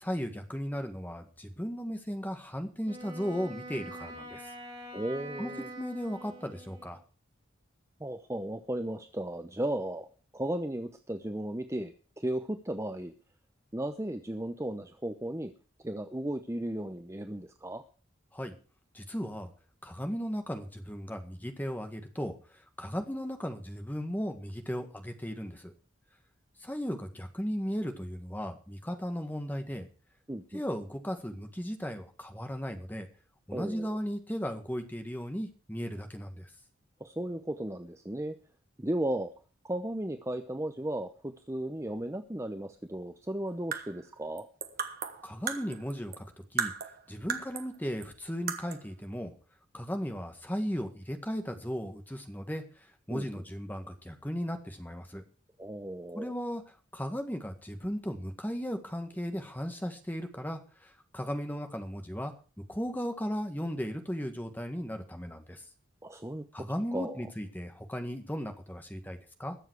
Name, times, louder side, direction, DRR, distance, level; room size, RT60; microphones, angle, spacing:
voice 1, 0.0-4.4 5.4-5.5 5.8-7.0 18.3-18.5 18.9-19.5 19.8-22.3 22.8-25.7 26.6-29.9 30.5-33.1 33.5-36.5 45.2-46.2 46.5-46.7 47.1-49.3 49.7-52.6 53.1-55.2 56.1-56.6 56.9-62.3 62.7-65.6 66.5-69.6, equal, 10° left, 6 dB, 1.7 m, -36 dB
Wind instrument woodwind instrument, 2.8-7.0, right 1 dB, 30° right, 5.0 m, -45 dB
voice 2, 4.9-5.7 8.0-10.1 10.3-13.1 13.7-15.5 15.8-17.8 30.3-30.6 33.5-33.9 37.0-38.4 38.8-39.3 39.6-44.5 53.1-53.3 55.6-56.3 66.0-66.4 66.9-67.2, right 1 dB, 15° right, 7 dB, 0.8 m, -35 dB
sound 1, 43.5-46.3 46.6-47.8 48.0-48.1 48.5-48.9, right 7 dB, 45° right, 1.5 m, -36 dB
21.5 x 7.3 x 4.8 m, 0.37 s
head